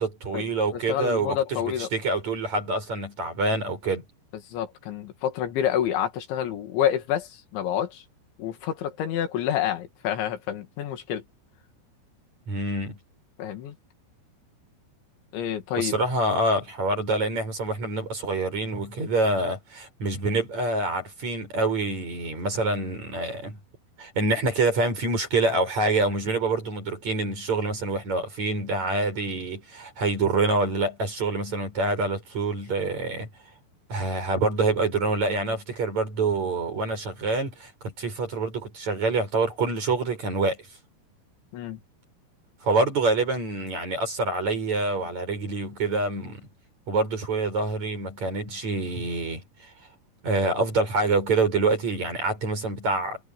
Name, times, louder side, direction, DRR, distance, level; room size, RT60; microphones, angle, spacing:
voice 1, 0.0-4.0 12.5-13.0 15.8-23.6 24.0-33.3 33.9-40.6 42.6-46.5 46.9-49.4 50.2-53.2, right 3 dB, 35° right, 7.5 m, -26 dB
voice 2, 0.7-1.9 4.5-8.0 8.4-11.2 13.4-13.8 15.3-15.9 41.5-41.8, left 10 dB, 65° left, 4.5 m, -28 dB
omnidirectional pair, 5.9 m